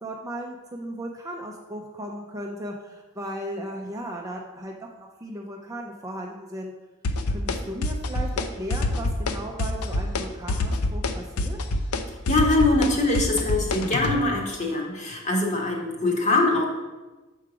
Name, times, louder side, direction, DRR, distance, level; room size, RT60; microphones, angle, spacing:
voice 1, 0.0-6.7 7.3-11.6, right 1 dB, 15° right, 0 dB, 0.5 m, -36 dB
sound 1, 7.0-7.6 7.8-8.5 8.7-9.3 9.6-10.2 10.5-14.2, left 2 dB, 80° left, 0.6 m, -25 dB
voice 2, 12.3-16.7, left 2 dB, 35° left, 0 dB, 1.2 m, -23 dB
7.1 x 4.7 x 4.9 m, 1.2 s
head